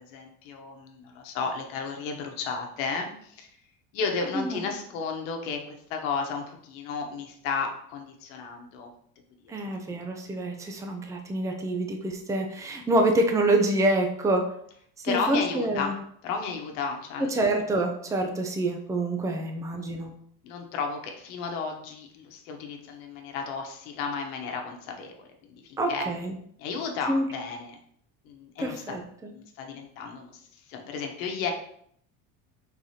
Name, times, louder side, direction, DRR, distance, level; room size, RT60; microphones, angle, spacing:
voice 1, 0.1-3.5 3.9-8.9 9.4-9.5 15.0-15.9 16.2-17.4 19.8-19.9 20.4-26.1 26.6-27.8 28.2-29.0 29.3-30.3 30.7-31.5, left 5 dB, 80° left, 3 dB, 1.1 m, -33 dB
voice 2, 9.5-14.4 15.1-16.0 17.3-20.1 25.8-26.3 27.1-27.2 28.6-29.3, right 1 dB, 10° right, 3 dB, 0.5 m, -26 dB
4.7 x 3.9 x 2.8 m, 0.66 s
supercardioid pair, 120°, 39 cm